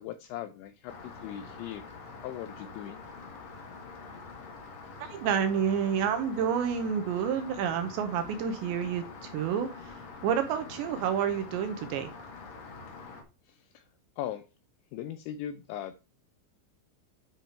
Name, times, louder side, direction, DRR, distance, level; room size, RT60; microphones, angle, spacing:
voice 1, 0.0-1.9 2.2-3.0 13.4-13.9 14.2-14.5 14.9-16.0, left 11 dB, 85° left, 11 dB, 2.6 m, -39 dB
Rain, 0.9-13.2, left 4 dB, 60° left, 1.8 m, -46 dB
voice 2, 5.0-9.9 10.2-12.1, right 8 dB, 75° right, 8 dB, 2.8 m, -29 dB
10.0 x 5.5 x 4.3 m, 0.30 s
omnidirectional pair, 5.8 m